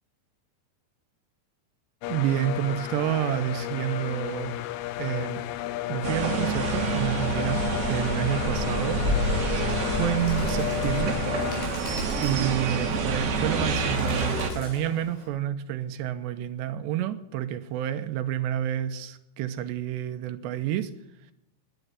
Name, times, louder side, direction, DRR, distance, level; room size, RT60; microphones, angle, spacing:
sound 1, 2.0-11.7, left 15 dB, 85° left, 2.3 m, -32 dB
voice 1, 2.1-4.6 5.0-5.4 5.9-7.6 7.9-9.0 9.9-11.2 12.2-20.9, right 11 dB, 80° right, 10 dB, 2.8 m, -29 dB
sound 2, 6.0-14.5, right 3 dB, 50° right, 2.1 m, -27 dB
Bird, 9.7-15.3, left 4 dB, 55° left, 6.2 m, -44 dB
11.0 x 10.0 x 9.3 m, 0.85 s
omnidirectional pair, 5.1 m